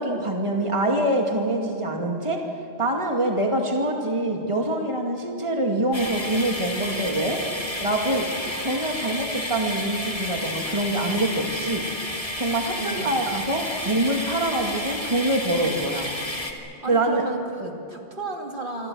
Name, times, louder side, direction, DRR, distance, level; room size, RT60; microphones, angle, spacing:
voice 1, 0.0-2.4 2.8-7.4 7.8-8.3 8.6-11.8 12.4-16.1 16.9-17.2 17.6-17.7, right 1 dB, 30° right, 1 dB, 2.4 m, -25 dB
sound 1, 5.9-16.5, left 1 dB, 30° left, 2.7 m, -31 dB
voice 2, 12.8-13.2 16.8-18.9, right 3 dB, 50° right, 1 dB, 2.8 m, -33 dB
28.0 x 24.0 x 6.4 m, 2.9 s
omnidirectional pair, 1.1 m